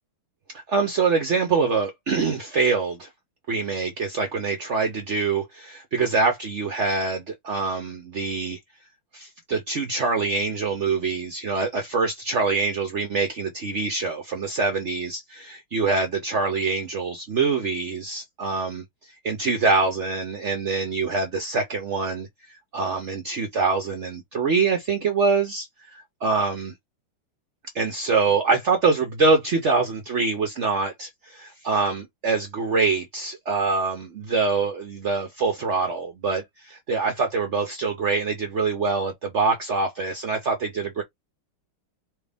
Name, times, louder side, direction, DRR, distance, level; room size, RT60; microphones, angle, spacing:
voice 1, 0.5-3.1 3.5-8.6 9.1-18.8 19.2-25.7 25.9-26.7 27.7-41.0, right 4 dB, 80° right, 0.6 m, -25 dB
4.5 x 2.3 x 3.4 m
omnidirectional pair, 2.3 m